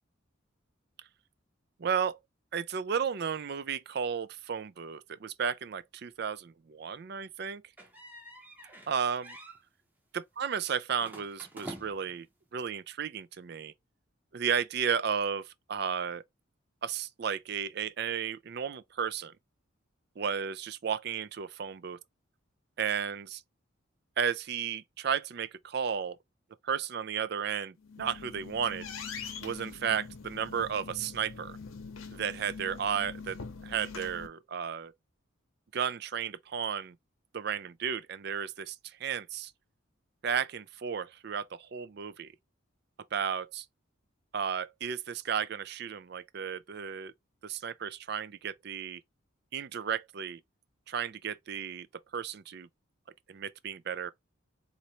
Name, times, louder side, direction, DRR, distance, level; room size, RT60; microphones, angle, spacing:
voice 1, 1.8-2.2 2.5-7.6 8.9-9.4 10.1-12.3 12.5-13.7 14.3-16.2 16.8-19.3 20.2-22.0 22.8-23.4 24.2-26.2 26.6-28.9 29.4-31.6 32.1-33.4 33.6-34.9 35.7-37.0 37.3-39.5 40.2-42.3 43.1-43.7 44.3-47.1 47.4-49.0 49.5-50.4 50.9-51.9 52.1-52.7 53.3-54.1, right 7 dB, 50° right, 0.4 m, -33 dB
sound 1, 7.8-8.9 9.2-9.6 11.0-12.2, right 1 dB, 10° right, 0.8 m, -47 dB
sound 2, 27.8-34.3, left 5 dB, 85° left, 0.8 m, -44 dB
4.2 x 2.6 x 2.9 m
head